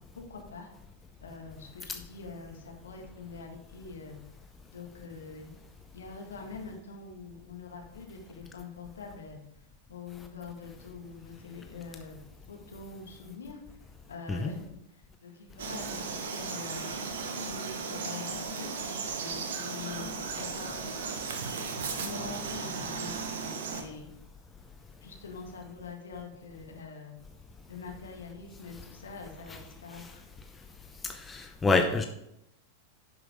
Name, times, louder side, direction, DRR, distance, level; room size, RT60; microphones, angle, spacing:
voice 1, 0.1-0.7 1.2-4.2 4.7-5.6 5.9-9.4 9.9-12.2 12.5-13.6 14.1-16.9 17.4-18.7 19.2-20.9 22.0-24.1 25.0-27.1 27.7-30.2, left 4 dB, 70° left, 1 dB, 1.8 m, -44 dB
Frog, 15.6-23.8, right 4 dB, 60° right, 1.0 m, -36 dB
voice 2, 31.0-32.1, left 3 dB, 15° left, 5 dB, 0.7 m, -27 dB
10.5 x 5.9 x 3.6 m, 0.82 s
figure-of-eight pair, 90°, 0 cm